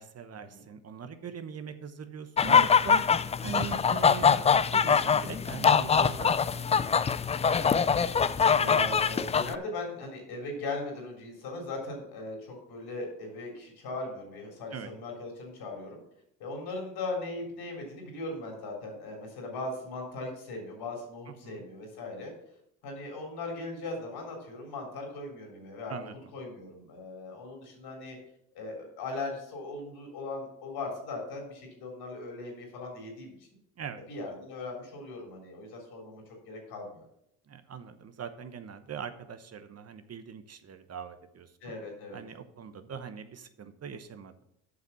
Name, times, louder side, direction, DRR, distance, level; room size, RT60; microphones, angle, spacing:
voice 1, 0.0-3.0 3.4-7.3 14.7-14.9 21.3-21.6 25.9-26.2 33.8-34.0 37.5-41.5 42.1-44.4, right 7 dB, 40° right, 10 dB, 0.9 m, -42 dB
sound 1, 2.4-9.6, left 6 dB, 15° left, 0.3 m, -24 dB
voice 2, 8.6-16.0 16.4-22.3 22.8-28.2 28.5-33.5 34.1-37.0 41.6-42.2, left 2 dB, 70° left, 1 dB, 3.9 m, -39 dB
7.6 x 5.8 x 7.0 m, 0.76 s
supercardioid pair, 70°, 40 cm